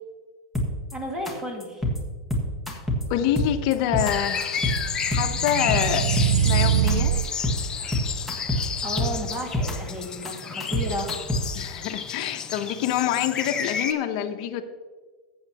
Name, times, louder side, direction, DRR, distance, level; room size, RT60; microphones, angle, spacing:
sound 1, 0.5-0.9 1.3-1.4 1.6-2.0 2.3-3.0 3.4-4.1 4.4-4.8 5.1-6.5 6.9-7.0 7.2-7.6 7.9-8.6 9.0-9.7 10.0-11.6, left 1 dB, ahead, 1.5 m, -26 dB
voice 1, 0.9-1.9 8.4-11.1, equal, 15° right, 0 dB, 2.0 m, -33 dB
voice 2, 3.1-4.6 5.1-6.1 6.4-7.1 11.5-14.6, left 11 dB, 55° left, 7 dB, 0.9 m, -26 dB
sound 2, 4.0-13.9, left 7 dB, 20° left, 0.6 m, -31 dB
sound 3, 4.3-7.3, right 9 dB, 90° right, 0.4 m, -24 dB
13.5 x 8.0 x 2.9 m, 1.4 s
supercardioid pair, 140°, 4 cm